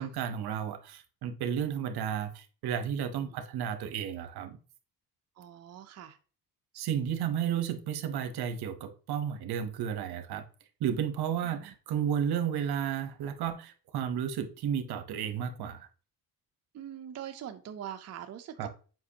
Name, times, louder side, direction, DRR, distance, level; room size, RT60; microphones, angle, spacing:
voice 1, 0.0-4.6 6.7-10.4 10.8-15.9 18.6-18.7, right 8 dB, 70° right, 1.0 m, -32 dB
voice 2, 5.4-6.2 11.4-11.7 16.7-18.7, right 10 dB, 40° right, 0.6 m, -43 dB
7.8 x 5.1 x 2.8 m
cardioid pair, 120°, 39 cm